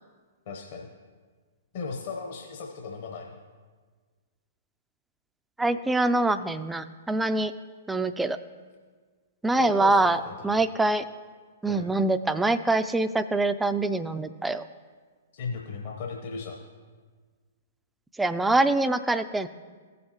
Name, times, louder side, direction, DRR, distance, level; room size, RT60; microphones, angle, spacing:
voice 1, 0.5-0.9 1.7-3.3 9.6-10.7 11.6-11.9 15.3-16.6, left 4 dB, 55° left, 1 dB, 0.9 m, -37 dB
voice 2, 5.6-7.5 7.9-8.4 9.4-11.1 11.6-14.7 18.2-19.5, right 2 dB, 5° right, 10 dB, 0.4 m, -24 dB
16.0 x 6.6 x 2.9 m, 1.5 s
figure-of-eight pair, 110°, 0 cm